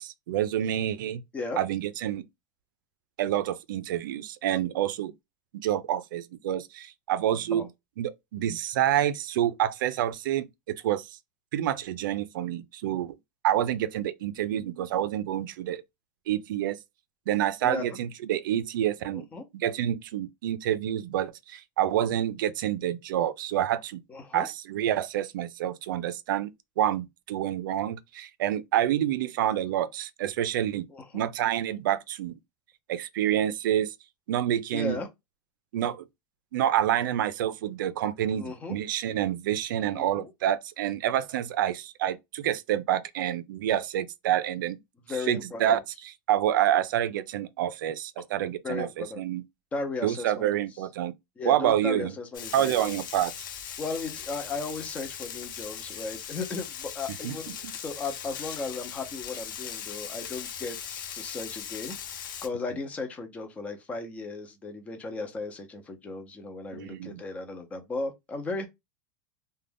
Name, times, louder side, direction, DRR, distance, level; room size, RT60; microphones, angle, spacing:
voice 1, 0.0-1.2 1.6-2.2 3.2-5.1 5.5-7.7 8.0-11.2 11.5-13.1 13.4-15.8 16.3-16.8 17.3-19.3 19.5-24.0 24.3-26.5 26.8-30.9 31.1-32.4 32.9-33.9 34.3-35.0 35.7-36.1 36.5-44.8 45.3-45.8 46.3-49.4 50.0-51.1 51.4-52.1 52.5-53.3 57.2-57.4 66.7-67.2, right 11 dB, 90° right, 0.4 m, -28 dB
voice 2, 17.6-18.0 19.1-19.4 24.1-24.5 30.9-31.2 34.7-35.1 38.4-38.8 39.8-40.3 45.1-45.8 48.6-49.2 49.7-50.5 51.4-53.0 53.8-68.7, left 3 dB, 15° left, 0.5 m, -36 dB
Frying (food), 52.3-62.5, left 8 dB, 90° left, 0.8 m, -39 dB
2.5 x 2.2 x 3.3 m
supercardioid pair, 170°, 10 cm